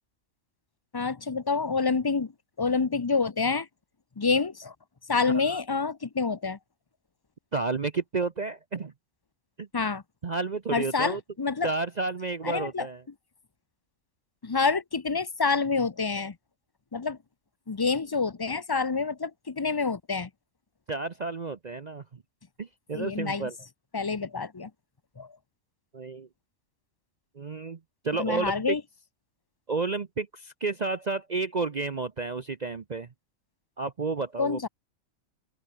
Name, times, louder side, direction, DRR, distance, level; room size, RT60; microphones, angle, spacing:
voice 1, 0.9-2.3 2.6-3.7 4.2-4.7 5.1-6.6 9.7-10.0 10.7-11.7 12.4-12.9 14.4-16.4 16.9-17.2 17.7-20.3 22.9-23.5 23.9-24.7 25.2-25.3 28.2-28.8 34.4-34.7, left 4 dB, 30° left, 0.4 m, -27 dB
voice 2, 7.5-8.9 9.6-9.7 10.2-11.2 11.6-13.0 20.9-22.0 22.6-23.5 25.9-26.3 27.4-27.8 28.0-28.5 29.7-33.1 33.8-34.7, right 4 dB, 40° right, 0.8 m, -31 dB
omnidirectional pair, 1.4 m